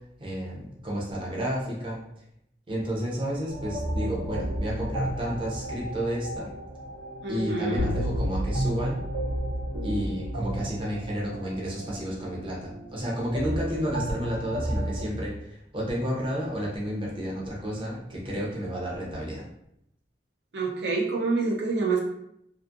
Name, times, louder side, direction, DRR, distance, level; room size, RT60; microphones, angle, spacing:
voice 1, 0.2-2.0 2.7-6.5 7.3-9.0 9.8-19.4, equal, 30° right, -4 dB, 0.6 m, -31 dB
sound 1, 3.5-15.1, right 1 dB, 90° right, 1.0 m, -33 dB
voice 2, 7.2-7.9 20.5-22.0, right 3 dB, 70° right, -2 dB, 0.4 m, -27 dB
sound 2, 7.8-10.6, left 1 dB, 55° left, 0.3 m, -33 dB
2.5 x 2.3 x 2.6 m, 0.77 s
head